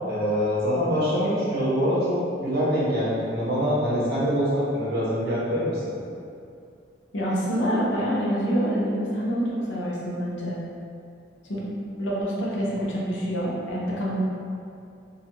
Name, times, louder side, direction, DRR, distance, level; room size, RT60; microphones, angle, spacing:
voice 1, 0.1-5.9, equal, 55° right, -9 dB, 0.9 m, -24 dB
voice 2, 7.1-10.6 11.5-11.7 12.0-14.2, equal, 85° left, -5 dB, 0.6 m, -26 dB
2.5 x 2.3 x 3.0 m, 2.4 s
head